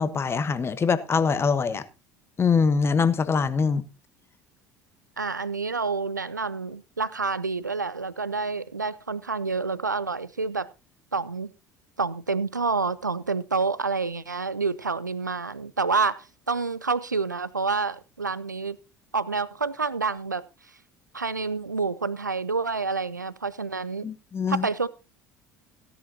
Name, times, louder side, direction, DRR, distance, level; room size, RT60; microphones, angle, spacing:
voice 1, 0.0-1.8 2.4-3.8 24.0-24.7, left 5 dB, 25° left, 1.2 m, -23 dB
voice 2, 5.2-10.7 11.1-11.5 12.0-18.8 19.1-20.4 21.1-24.1 24.5-24.9, right 4 dB, 85° right, 0.5 m, -28 dB
16.5 x 10.0 x 2.9 m
figure-of-eight pair, 65°, 10 cm